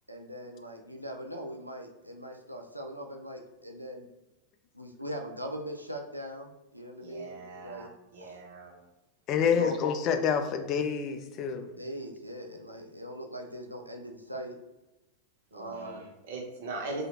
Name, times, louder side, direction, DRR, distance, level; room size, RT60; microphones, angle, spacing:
voice 1, 0.1-4.1 4.7-8.4 9.4-9.8 11.7-14.6 15.5-16.1, equal, 90° right, 2 dB, 0.3 m, -41 dB
voice 2, 7.0-8.8 15.5-17.1, right 2 dB, 55° right, 0 dB, 0.7 m, -40 dB
voice 3, 9.3-11.7, left 7 dB, 35° left, 7 dB, 0.3 m, -27 dB
3.3 x 2.8 x 2.4 m, 1.0 s
figure-of-eight pair, 90°, 0 cm